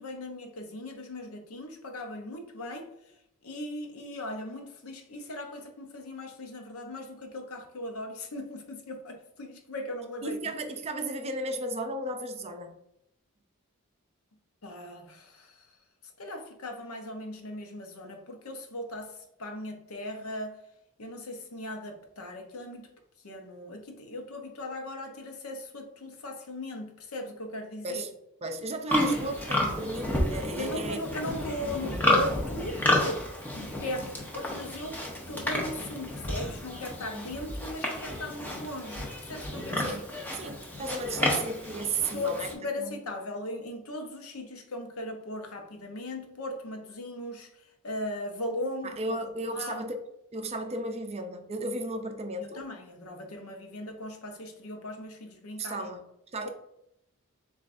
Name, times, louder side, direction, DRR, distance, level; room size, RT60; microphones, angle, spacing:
voice 1, 0.0-2.9 3.4-10.4 14.6-15.7 16.2-20.6 21.0-22.9 23.2-28.0 30.6-33.2 33.5-35.0 35.3-39.9 42.1-47.5 47.8-49.0 49.5-49.8 52.5-55.9, left 1 dB, 75° left, 4 dB, 0.8 m, -38 dB
voice 2, 10.2-12.7 27.8-28.1 28.4-31.0 39.8-40.0 40.3-42.5 42.8-43.0 48.8-50.0 50.3-52.6 55.6-56.0 56.3-56.5, right 2 dB, 30° right, 6 dB, 0.4 m, -34 dB
Livestock farm animals working animals, 28.9-42.5, left 1 dB, 10° left, 0.7 m, -31 dB
7.3 x 2.4 x 2.5 m, 0.84 s
head